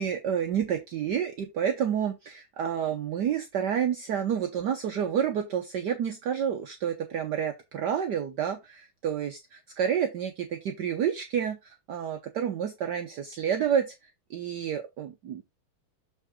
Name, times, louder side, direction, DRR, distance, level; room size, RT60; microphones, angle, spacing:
voice 1, 0.0-13.9 14.3-15.4, right 8 dB, 65° right, 1.2 m, -29 dB
6.8 x 5.4 x 3.7 m
omnidirectional pair, 2.3 m